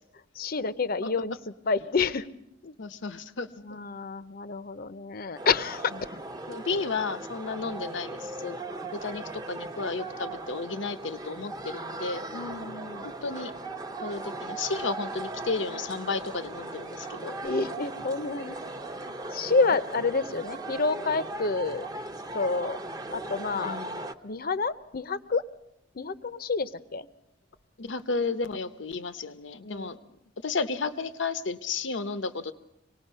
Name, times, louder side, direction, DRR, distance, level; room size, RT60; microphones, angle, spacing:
voice 1, 0.3-2.3 2.6-2.7 3.6-6.2 12.3-13.1 17.4-18.6 19.3-21.9 22.3-22.8 23.1-23.8 24.2-25.4 25.9-27.1 29.6-29.9, left 4 dB, 55° left, 14 dB, 0.7 m, -29 dB
voice 2, 2.8-3.5 6.5-8.6 8.9-12.2 13.0-13.5 14.0-17.4 23.5-24.1 27.8-30.0 30.4-32.5, left 4 dB, 85° left, 12 dB, 0.9 m, -33 dB
sound 1, 5.4-24.1, right 2 dB, 20° right, 0.8 m, -38 dB
25.5 x 19.0 x 5.5 m, 0.85 s
head